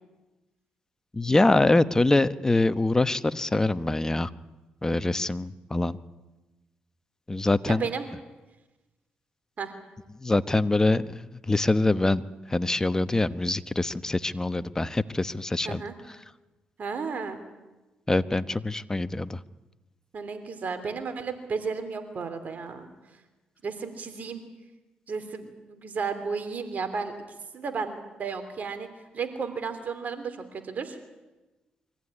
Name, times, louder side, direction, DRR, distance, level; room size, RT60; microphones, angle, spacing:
voice 1, 1.1-4.3 4.8-6.0 7.3-7.9 10.2-12.2 12.5-15.8 18.1-19.4, left 2 dB, 15° left, 13 dB, 1.0 m, -24 dB
voice 2, 7.7-8.1 9.6-9.7 15.6-15.9 16.8-17.4 20.1-22.9 23.6-24.4 25.1-27.1 27.5-28.9 29.1-31.0, right 5 dB, 55° right, 9 dB, 3.1 m, -33 dB
23.5 x 15.0 x 9.8 m, 1.1 s
supercardioid pair, 65°, 3 cm